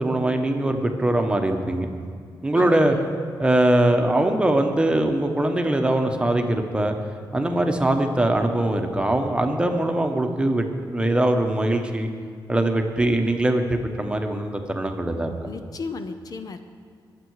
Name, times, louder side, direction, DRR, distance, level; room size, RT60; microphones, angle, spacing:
voice 1, 0.0-1.9 2.4-3.0 3.4-6.9 7.3-12.1 12.5-15.3, right 1 dB, 10° right, 4 dB, 1.1 m, -22 dB
voice 2, 2.5-3.2 15.4-16.6, left 4 dB, 50° left, 8 dB, 0.7 m, -35 dB
22.0 x 7.7 x 4.8 m, 2.1 s
cardioid pair, 115°, 8 cm